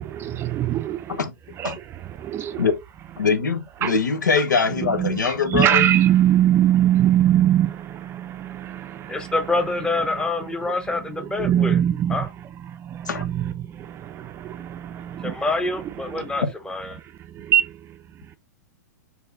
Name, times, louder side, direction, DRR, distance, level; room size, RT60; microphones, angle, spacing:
voice 1, 0.0-1.2 1.6-2.7 3.8-4.0 4.8-9.4 10.1-10.3 10.6-12.3 12.6-15.5 16.0-16.4 16.9-18.4, right 11 dB, 25° right, 0.5 m, -23 dB
voice 2, 3.2-5.9 13.1-13.2 16.2-16.5, left 5 dB, 85° left, 0.8 m, -23 dB
voice 3, 9.1-11.8 12.1-12.3 15.2-17.0, left 2 dB, 10° left, 0.8 m, -26 dB
4.5 x 2.7 x 3.8 m
hypercardioid pair, 115°, 10 cm